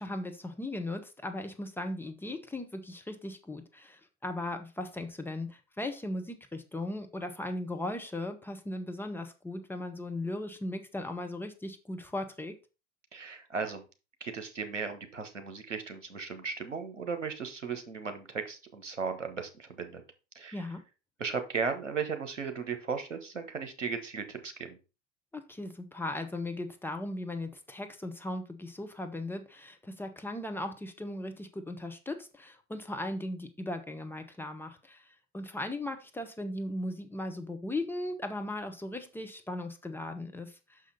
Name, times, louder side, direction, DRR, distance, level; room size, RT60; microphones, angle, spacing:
voice 1, 0.0-12.5 20.5-20.8 25.3-35.0 35.3-40.8, left 1 dB, 5° left, 5 dB, 0.7 m, -37 dB
voice 2, 13.1-13.8 14.2-20.0 20.3-20.7 21.2-24.8, right 5 dB, 80° right, 7 dB, 1.3 m, -36 dB
6.2 x 5.5 x 4.0 m, 0.31 s
figure-of-eight pair, 90°, 36 cm